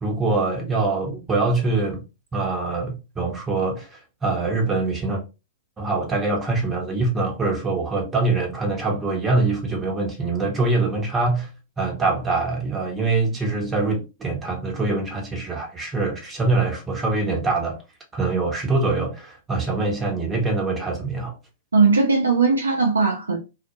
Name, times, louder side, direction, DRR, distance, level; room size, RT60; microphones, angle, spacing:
voice 1, 0.0-2.0 2.3-5.2 5.8-11.5 11.8-17.8 18.1-21.4, right 3 dB, 15° right, 0.8 m, -24 dB
voice 2, 21.7-23.4, right 4 dB, 80° right, 0.4 m, -18 dB
2.1 x 2.1 x 2.8 m
figure-of-eight pair, 100°, 0 cm